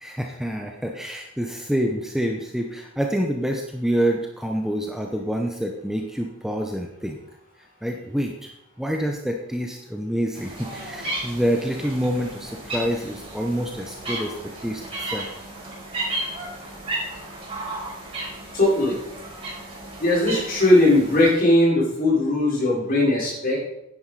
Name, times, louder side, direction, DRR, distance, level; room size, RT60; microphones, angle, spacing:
voice 1, 0.0-7.2 7.8-8.5 8.8-14.3 14.6-15.3, equal, ahead, 2 dB, 0.9 m, -27 dB
sound 1, 10.4-21.3, right 1 dB, 30° right, 5.0 m, -34 dB
voice 2, 18.5-18.9 20.0-23.6, left 1 dB, 45° left, -4 dB, 4.9 m, -19 dB
9.9 x 9.8 x 4.9 m, 0.85 s
head